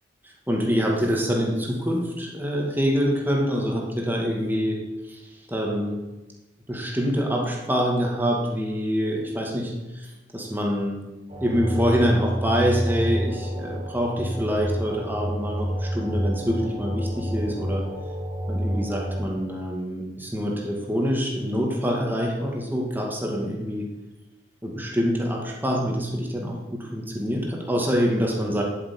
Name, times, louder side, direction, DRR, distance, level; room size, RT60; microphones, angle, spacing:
voice 1, 0.5-5.2 5.5-6.0 6.7-10.1 10.3-11.0 11.4-17.9 18.5-23.9 24.6-28.6, equal, 10° right, -1 dB, 2.2 m, -25 dB
sound 1, 11.3-19.3, equal, 35° right, 1.8 m, -29 dB
8.5 x 7.2 x 8.6 m, 1.1 s
head